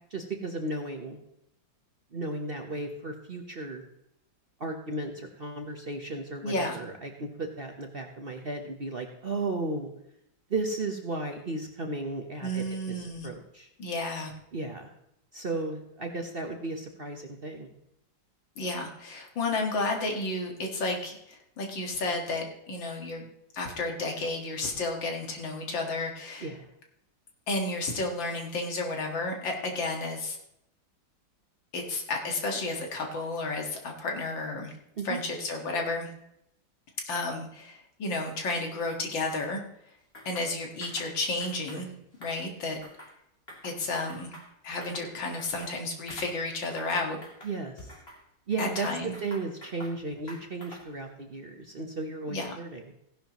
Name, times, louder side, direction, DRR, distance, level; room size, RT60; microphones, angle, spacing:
voice 1, 0.1-1.2 2.1-3.8 4.6-9.9 10.5-13.7 14.5-14.9 15.3-17.7 26.4-26.7 35.0-35.2 41.7-41.9 47.4-47.9 48.5-48.9 49.2-52.8, right 2 dB, 40° right, 3 dB, 0.9 m, -35 dB
voice 2, 6.4-6.8 12.4-13.3 13.8-14.3 18.6-23.3 23.5-26.5 27.5-30.4 31.7-34.7 35.0-36.1 37.0-39.6 40.3-41.9 42.2-42.8 43.6-44.3 44.6-47.2 48.6-49.1 52.3-52.5, left 2 dB, 80° left, 1 dB, 2.6 m, -32 dB
sound 1, 40.1-40.5 40.8-41.1 41.4-41.8 42.1-43.2 43.5-43.8 44.1-45.1 45.4-45.8 46.1-46.3 46.6-46.9 47.2-48.2 48.6-50.0 50.3-51.0, equal, 30° left, 3.0 m, -47 dB
16.0 x 11.0 x 3.0 m, 0.78 s
omnidirectional pair, 2.0 m